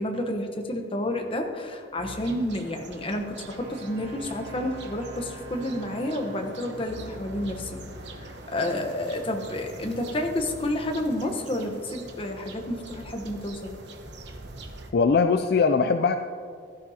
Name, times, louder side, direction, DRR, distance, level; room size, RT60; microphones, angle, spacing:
voice 1, 0.0-7.8 8.2-13.8, left 1 dB, 25° left, 3 dB, 1.0 m, -30 dB
Keyboard (musical), 2.0-2.6 4.0-5.6 6.9-13.9, left 3 dB, 80° left, 1.2 m, -48 dB
sound 1, 2.0-14.9, right 2 dB, 60° right, 1.0 m, -44 dB
Wind instrument woodwind instrument, 3.3-7.0, right 3 dB, 75° right, 2.9 m, -45 dB
voice 2, 14.9-16.2, left 5 dB, 50° left, 8 dB, 0.3 m, -21 dB
16.0 x 12.5 x 2.8 m, 2.3 s
head